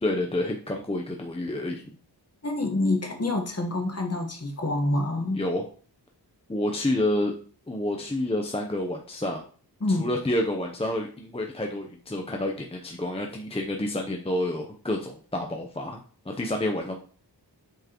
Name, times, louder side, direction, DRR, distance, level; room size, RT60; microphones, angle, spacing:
voice 1, 0.0-2.0 5.3-5.7 6.5-7.3 7.7-9.4 10.0-16.0 16.3-17.0, left 1 dB, 15° left, 2 dB, 0.7 m, -29 dB
voice 2, 2.4-5.4 9.8-10.1, left 2 dB, 35° left, 2 dB, 1.4 m, -27 dB
7.9 x 4.6 x 3.0 m, 0.42 s
wide cardioid pair, 110°, 41 cm